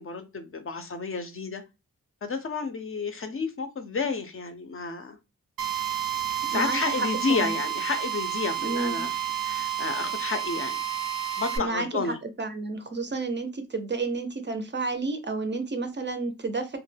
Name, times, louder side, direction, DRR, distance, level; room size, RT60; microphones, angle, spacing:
voice 1, 0.0-1.6 2.2-5.2 6.5-9.1 9.4-10.8 11.4-12.2, left 4 dB, 40° left, 0.4 m, -31 dB
Drill, 5.6-11.6, right 10 dB, 90° right, 0.6 m, -30 dB
voice 2, 6.4-7.5 8.6-9.1 11.6-11.9 12.4-16.8, right 3 dB, 35° right, 0.4 m, -31 dB
2.2 x 2.1 x 3.2 m
wide cardioid pair, 90°, 33 cm